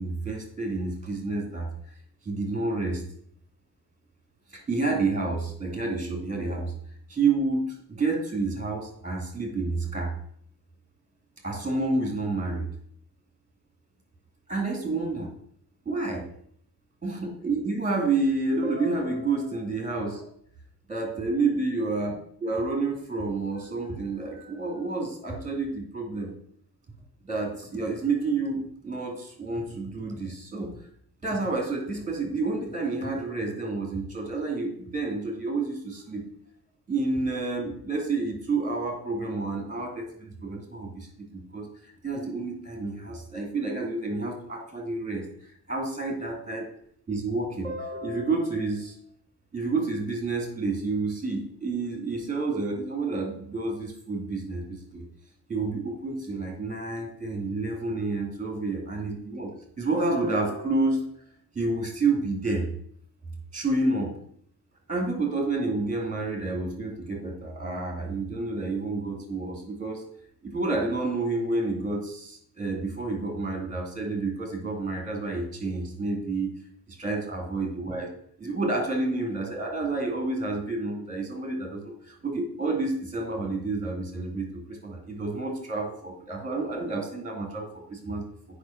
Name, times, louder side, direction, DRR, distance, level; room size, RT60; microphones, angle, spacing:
voice 1, 0.0-1.7 2.2-3.0 4.5-6.7 7.1-10.1 11.4-12.7 14.5-15.3 15.9-16.3 17.0-20.2 20.9-22.1 22.4-26.3 27.2-30.7 31.2-36.3 36.9-41.1 41.3-45.3 45.7-46.7 47.1-49.0 49.5-55.0 55.5-59.5 59.8-61.1 61.5-62.6 63.5-64.1 64.9-70.0 70.4-76.5 76.9-78.1 78.4-88.2, right 3 dB, 20° right, 2 dB, 2.5 m, -29 dB
8.4 x 5.3 x 5.9 m, 0.63 s
wide cardioid pair, 150°, 38 cm